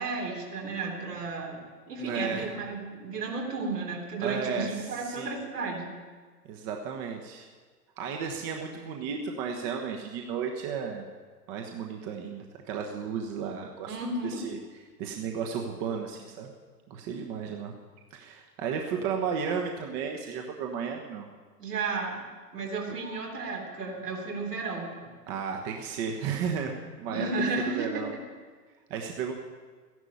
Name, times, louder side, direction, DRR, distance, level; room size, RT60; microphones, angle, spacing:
voice 1, 0.0-1.6 1.9-5.9 13.9-14.4 21.6-22.2 22.5-25.1 27.1-28.2, right 3 dB, 75° right, -1 dB, 3.6 m, -33 dB
voice 2, 2.0-2.5 4.2-5.4 6.4-7.5 8.0-11.0 11.5-14.0 14.2-14.6 15.0-16.5 16.9-17.7 18.1-21.3 25.3-27.3 27.7-28.1 28.9-29.3, right 6 dB, 35° right, 2 dB, 1.4 m, -33 dB
14.0 x 11.0 x 7.0 m, 1.5 s
figure-of-eight pair, 105°, 48 cm